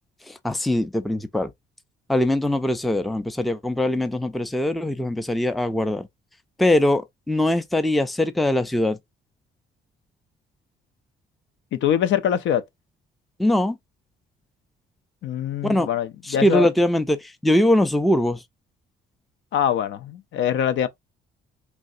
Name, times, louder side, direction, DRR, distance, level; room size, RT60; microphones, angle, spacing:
voice 1, 0.3-1.5 2.1-6.1 6.6-9.0 13.4-13.8 15.6-15.9 16.2-18.4, left 1 dB, ahead, 0.4 m, -22 dB
voice 2, 11.7-12.6 15.2-16.7 19.5-20.9, left 9 dB, 70° left, 0.4 m, -23 dB
3.2 x 2.6 x 2.5 m
cardioid pair, 90°, 20 cm